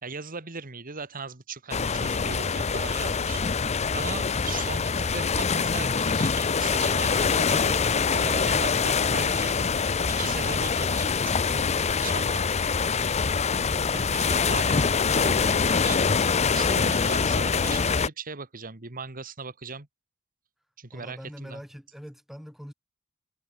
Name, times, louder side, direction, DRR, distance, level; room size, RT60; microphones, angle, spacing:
voice 1, 0.0-3.4 3.9-9.6 10.1-11.7 12.0-12.6 13.9-19.9 20.8-21.6, right 4 dB, 40° right, 2.1 m, -38 dB
sound 1, 1.7-18.1, left 5 dB, 30° left, 0.6 m, -24 dB
voice 2, 8.4-9.1 20.9-22.7, equal, ahead, 5.1 m, -44 dB
head